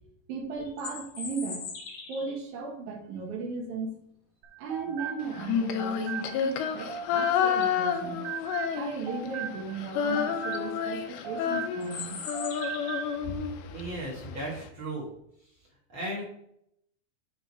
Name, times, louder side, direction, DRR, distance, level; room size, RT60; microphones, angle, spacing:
voice 1, 0.3-1.7 2.1-4.0 4.6-8.2 8.8-12.2, right 4 dB, 65° right, 1 dB, 2.2 m, -36 dB
sound 1, 0.6-2.4 6.9-7.0 7.5-7.9 9.9-10.0 10.4-10.6 11.8-13.2, left 5 dB, 60° left, 1.8 m, -41 dB
sound 2, 4.4-7.7 8.0-12.1 12.3-13.2, right 8 dB, 85° right, 2.6 m, -39 dB
Female singing, 5.3-9.3 9.5-13.8, left 8 dB, 80° left, 2.0 m, -29 dB
voice 2, 13.7-15.1 15.9-16.2, right 1 dB, 45° right, -4 dB, 1.8 m, -35 dB
8.1 x 3.5 x 4.1 m, 0.73 s
omnidirectional pair, 4.0 m